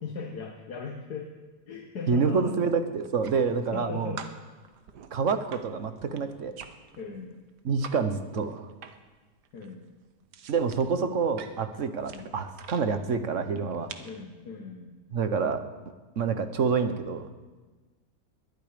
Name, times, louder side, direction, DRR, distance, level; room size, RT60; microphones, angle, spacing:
voice 1, 0.0-1.3 1.7-2.6 3.7-4.3 7.0-7.4 9.5-9.9 12.1-12.3 14.0-15.0, left 4 dB, 70° left, 2 dB, 1.8 m, -38 dB
voice 2, 2.1-4.1 5.1-6.5 7.6-8.7 10.5-13.9 15.1-15.6 16.2-17.2, right 5 dB, 50° right, 9 dB, 1.4 m, -27 dB
sound 1, 2.9-3.8 4.2-8.0 8.3-9.2 9.4-12.9 13.5-14.2, right 7 dB, 85° right, 1.6 m, -46 dB
21.0 x 12.5 x 5.2 m, 1.3 s
omnidirectional pair, 1.7 m